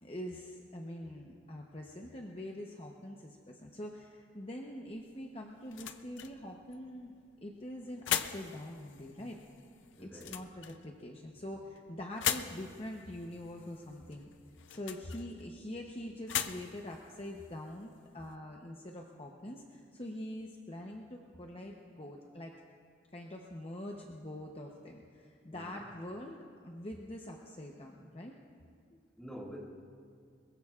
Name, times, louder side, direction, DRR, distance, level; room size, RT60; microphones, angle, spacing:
voice 1, 0.0-7.1 7.4-9.4 10.0-14.3 14.7-22.5 23.1-26.4 26.6-28.4, left 1 dB, 30° left, 0 dB, 0.8 m, -44 dB
sound 1, 4.9-18.4, left 9 dB, 75° left, 0.6 m, -42 dB
voice 2, 10.0-10.4 25.5-25.9 29.2-29.6, equal, ahead, -4 dB, 2.1 m, -47 dB
21.5 x 21.5 x 2.4 m, 2.2 s
head